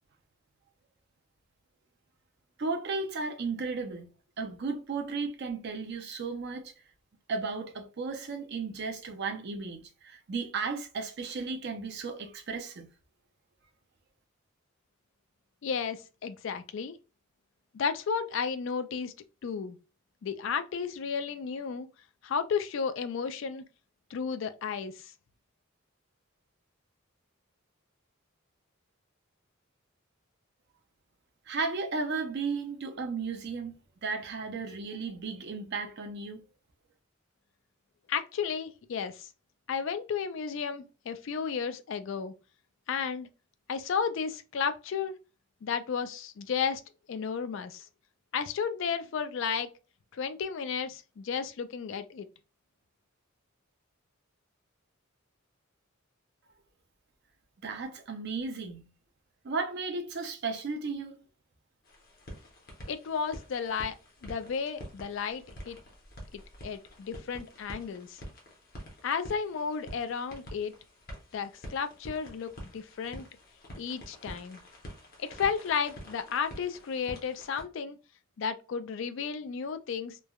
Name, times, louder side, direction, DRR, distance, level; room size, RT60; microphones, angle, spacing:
voice 1, 2.6-4.1 4.4-6.7 7.3-12.9 31.5-33.8 34.0-36.4 57.6-58.9 59.4-61.2, right 4 dB, 55° right, 0.5 m, -34 dB
voice 2, 15.6-17.0 17.7-19.1 19.4-19.8 20.2-21.9 22.2-23.6 24.1-25.1 38.1-39.3 39.7-42.3 42.9-43.3 43.7-45.1 45.6-46.8 47.1-47.8 48.3-49.7 50.1-52.3 62.9-64.0 64.2-65.8 66.3-68.2 69.0-70.7 71.3-73.3 73.8-74.6 75.2-78.0 78.4-80.2, left 6 dB, 60° left, 0.3 m, -33 dB
sound 1, 61.8-77.6, equal, 45° left, 0.9 m, -47 dB
3.2 x 2.1 x 2.3 m
head